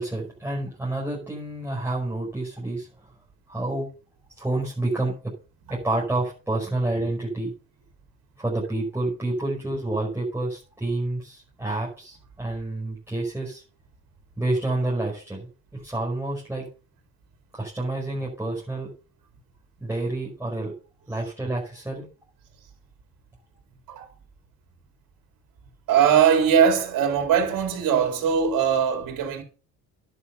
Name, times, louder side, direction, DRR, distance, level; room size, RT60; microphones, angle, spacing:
voice 1, 0.0-3.1 3.5-3.9 4.4-5.1 5.7-7.5 8.4-13.6 14.4-16.7 17.5-18.9 19.8-20.7 21.1-22.1, right 2 dB, 5° right, 5.4 m, -29 dB
voice 2, 25.9-29.4, right 8 dB, 60° right, 3.9 m, -21 dB
11.0 x 7.2 x 5.6 m
supercardioid pair, 100°, 38 cm